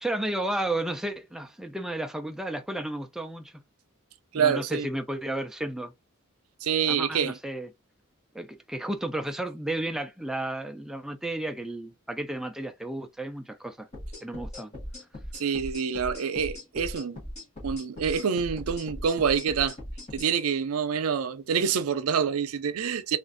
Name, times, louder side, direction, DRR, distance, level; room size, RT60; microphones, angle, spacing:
voice 1, 0.0-3.5 4.3-5.9 6.9-7.7 8.3-13.9 14.2-14.7, right 1 dB, 5° right, 0.3 m, -32 dB
voice 2, 4.3-4.9 6.6-7.3 15.4-17.2 17.6-19.8 20.1-23.2, right 7 dB, 85° right, 0.4 m, -26 dB
sound 1, 13.9-20.3, left 1 dB, 35° left, 1.5 m, -39 dB
3.1 x 2.5 x 2.5 m
head